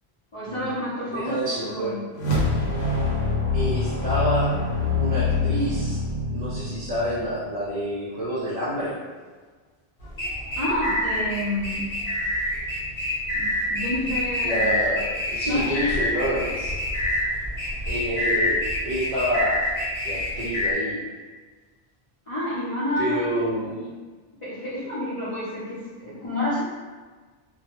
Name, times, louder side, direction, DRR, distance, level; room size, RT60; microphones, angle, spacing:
voice 1, 0.3-2.1 10.6-11.8 13.3-14.8 15.4-15.7 22.3-23.9 24.4-26.6, left 1 dB, 40° left, -11 dB, 0.5 m, -29 dB
voice 2, 1.1-2.0 3.5-4.6 5.0-6.0 6.3-9.0 14.4-16.8 17.9-19.7 20.0-21.0 23.0-23.7, equal, 50° right, -8 dB, 0.4 m, -28 dB
sound 1, 2.1-7.5, left 3 dB, 85° left, 0.9 m, -25 dB
sound 2, 10.0-20.7, left 1 dB, 60° left, 0.9 m, -27 dB
2.2 x 2.0 x 2.8 m, 1.4 s
omnidirectional pair, 1.1 m